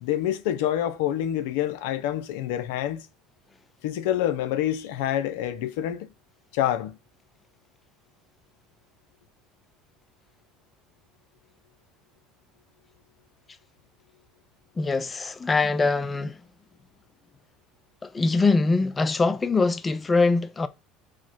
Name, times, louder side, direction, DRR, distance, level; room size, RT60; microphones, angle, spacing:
voice 1, 0.0-3.1 3.8-6.1 6.5-7.0, left 11 dB, 80° left, 0.4 m, -27 dB
voice 2, 14.8-16.4 18.0-20.7, left 3 dB, 25° left, 0.4 m, -23 dB
4.8 x 2.1 x 4.4 m
hypercardioid pair, 80°, 0 cm